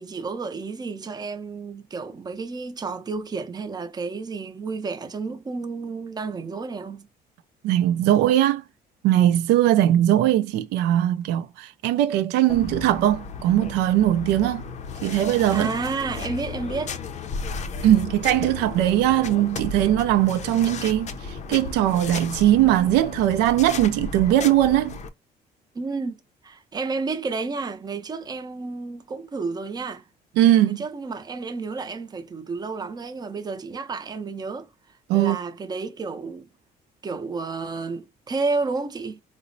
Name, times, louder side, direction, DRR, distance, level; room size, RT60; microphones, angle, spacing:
voice 1, 0.0-7.1 15.5-17.0 25.7-30.1 30.7-34.7 35.1-36.5 37.0-39.2, right 4 dB, 25° right, 0.5 m, -31 dB
voice 2, 7.6-8.6 9.0-14.6 15.0-15.7 17.8-25.0 30.4-30.8 35.1-35.4, right 13 dB, 90° right, 0.4 m, -20 dB
sound 1, 12.5-25.1, left 5 dB, 45° left, 0.5 m, -34 dB
3.9 x 2.0 x 2.6 m
cardioid pair, 110°, 17 cm